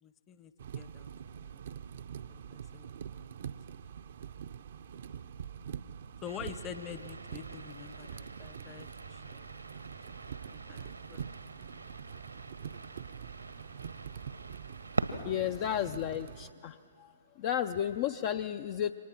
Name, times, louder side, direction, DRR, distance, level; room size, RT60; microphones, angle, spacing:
voice 1, 0.0-1.6 2.3-3.3 6.2-9.5 10.4-11.2, left 8 dB, 20° left, 13 dB, 0.8 m, -47 dB
sound 1, 0.6-16.5, right 8 dB, 55° right, 0.6 m, -45 dB
sound 2, 6.2-15.2, right 2 dB, 90° right, 1.4 m, -43 dB
voice 2, 15.2-17.1 17.4-18.9, left 10 dB, 40° left, 10 dB, 0.4 m, -33 dB
28.5 x 24.0 x 6.0 m, 2.7 s
figure-of-eight pair, 125°, 0 cm